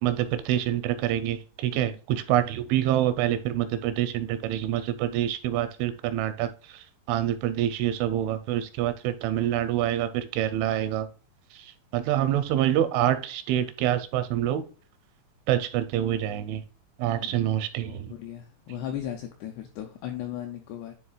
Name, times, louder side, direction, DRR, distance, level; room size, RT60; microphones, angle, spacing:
voice 1, 0.0-11.1 11.5-14.6 15.5-16.6 17.0-18.1, right 12 dB, 85° right, 2.9 m, -26 dB
voice 2, 17.8-20.9, left 11 dB, 85° left, 2.4 m, -37 dB
11.0 x 3.8 x 2.4 m
omnidirectional pair, 5.6 m